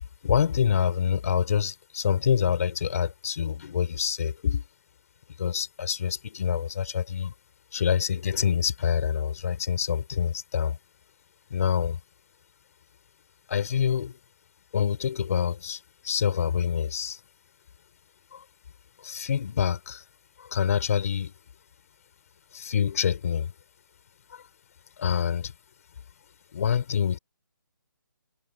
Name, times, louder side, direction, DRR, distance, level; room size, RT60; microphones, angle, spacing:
voice 1, 0.2-4.6 5.4-7.3 7.7-10.8 11.5-12.0 13.5-14.2 14.7-17.2 18.3-18.4 19.0-20.0 20.4-21.3 22.5-23.5 24.3-24.4 25.0-25.5 26.5-27.2, left 8 dB, 45° left, 6.0 m, -26 dB
hypercardioid pair, 165°, 11 cm